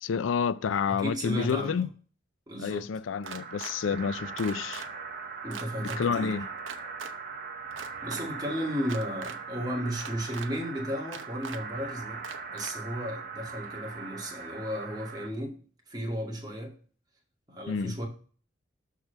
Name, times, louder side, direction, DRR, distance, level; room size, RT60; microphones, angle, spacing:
voice 1, 0.0-1.9 2.6-4.9 5.8-6.5 17.7-17.9, left 6 dB, 90° left, 0.4 m, -29 dB
voice 2, 0.9-1.8 2.5-2.8 5.4-6.3 8.0-12.2 12.5-15.5 15.9-16.7 17.5-18.1, equal, 20° right, 2.3 m, -34 dB
sound 1, 3.2-15.3, right 5 dB, 50° right, 1.2 m, -40 dB
sound 2, 3.2-3.7 4.4-4.9 5.5-6.0 6.7-7.1 7.7-8.2 8.8-9.4 10.0-10.5 11.1-11.6 12.2-12.7, right 6 dB, 80° right, 0.8 m, -41 dB
6.5 x 4.7 x 6.5 m
head